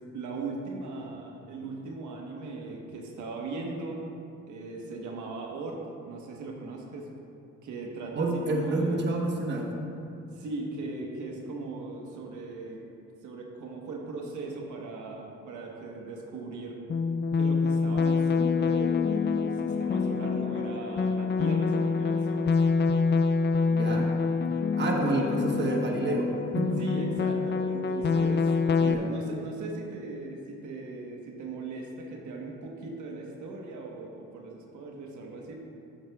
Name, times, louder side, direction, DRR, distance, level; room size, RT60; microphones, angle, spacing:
voice 1, 0.1-4.0 4.4-5.8 6.1-7.1 7.6-9.0 10.3-12.8 13.2-16.8 17.3-22.5 25.0-25.4 26.8-28.5 28.8-35.6, right 3 dB, 75° right, 0 dB, 1.2 m, -38 dB
voice 2, 8.1-9.6 23.7-24.1 24.8-26.8 28.8-29.1, right 2 dB, 35° right, 0 dB, 1.2 m, -28 dB
sound 1, 16.9-28.9, left 4 dB, 35° left, 0.5 m, -26 dB
14.0 x 7.5 x 2.3 m, 2.7 s
cardioid pair, 90°, 30 cm